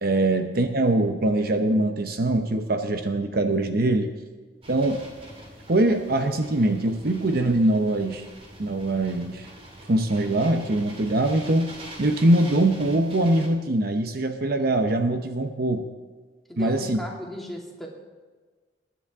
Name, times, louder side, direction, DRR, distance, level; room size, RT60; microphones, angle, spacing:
voice 1, 0.0-4.1 4.7-5.0 5.7-8.2 8.6-9.5 9.9-15.9 16.6-17.0, right 1 dB, 60° right, 7 dB, 0.8 m, -23 dB
sound 1, 4.6-13.5, right 1 dB, 35° right, 2.3 m, -44 dB
voice 2, 16.5-17.9, left 1 dB, ahead, -2 dB, 2.4 m, -36 dB
21.5 x 10.0 x 3.6 m, 1.4 s
head